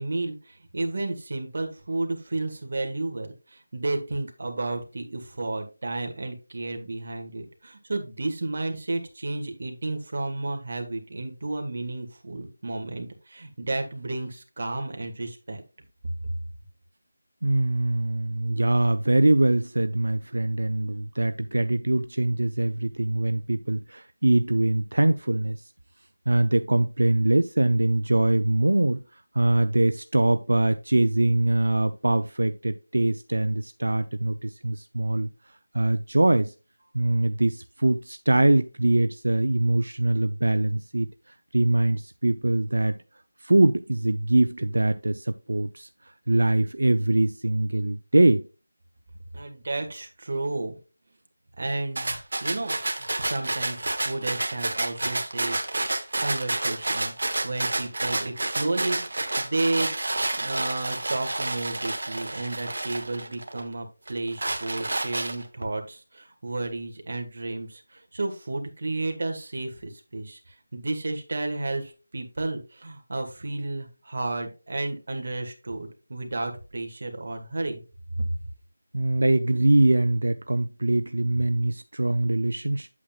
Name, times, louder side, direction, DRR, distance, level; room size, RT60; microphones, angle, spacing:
voice 1, 0.0-15.6 49.3-50.8 51.6-52.2 52.4-55.9 56.2-57.1 57.4-59.9 60.3-77.8 78.2-78.3, right 2 dB, 50° right, 1.5 m, -32 dB
voice 2, 17.4-25.6 26.3-29.0 29.3-35.3 35.7-36.5 36.9-41.1 41.5-43.0 43.4-45.9 46.3-48.4 78.9-82.9, right 2 dB, 85° right, 0.5 m, -23 dB
sound 1, 52.0-63.6 64.1-65.6, right 2 dB, 70° right, 1.2 m, -29 dB
8.4 x 7.2 x 2.3 m
figure-of-eight pair, 175°, 0 cm